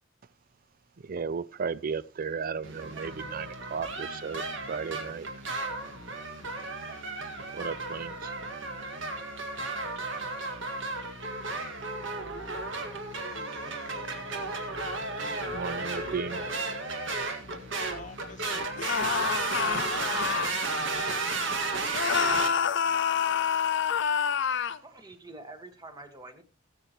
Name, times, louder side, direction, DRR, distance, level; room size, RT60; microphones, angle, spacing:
voice 1, 1.0-5.3 6.9-7.0 7.5-8.3 15.1-15.2 15.5-16.5, right 5 dB, 45° right, 0.4 m, -35 dB
sound 1, 2.6-22.5, right 3 dB, 65° right, 1.9 m, -34 dB
voice 2, 13.1-16.7 17.9-20.7, left 4 dB, 40° left, 1.0 m, -49 dB
sound 2, 18.8-20.5 21.9-24.8, left 7 dB, 65° left, 0.6 m, -27 dB
voice 3, 24.8-26.4, right 2 dB, 20° right, 1.5 m, -46 dB
18.0 x 8.0 x 3.0 m
head